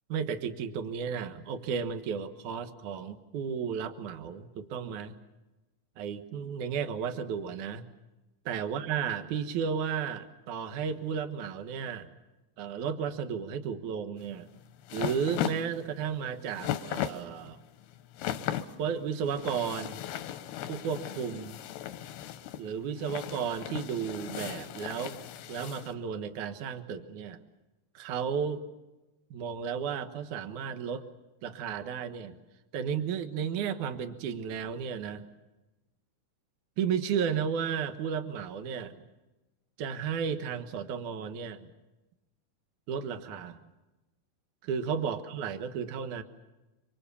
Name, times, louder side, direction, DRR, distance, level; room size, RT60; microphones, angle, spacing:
voice 1, 0.1-5.2 6.0-7.8 8.5-12.1 12.6-14.5 14.9-17.6 18.8-20.0 20.7-21.6 22.6-25.2 25.5-27.4 27.9-28.6 29.3-31.0 31.4-32.4 32.7-35.3 36.8-39.0 39.8-41.7 42.9-43.6 44.6-46.2, right 7 dB, 60° right, 9 dB, 2.6 m, -33 dB
sound 1, 14.2-25.9, left 11 dB, 90° left, 3.1 m, -37 dB
25.5 x 25.5 x 7.0 m, 1.1 s
omnidirectional pair, 4.4 m